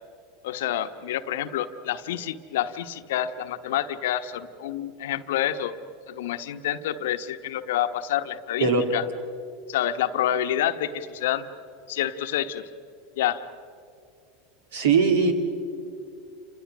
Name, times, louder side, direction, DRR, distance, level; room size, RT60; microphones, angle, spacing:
voice 1, 0.4-5.7 6.1-9.1 9.7-11.5 11.9-12.7 13.2-13.4, left 11 dB, 65° left, 10 dB, 1.1 m, -28 dB
voice 2, 14.7-15.3, right 5 dB, 70° right, 5 dB, 2.9 m, -20 dB
29.5 x 27.5 x 6.2 m, 2.5 s
hypercardioid pair, 85°, 0 cm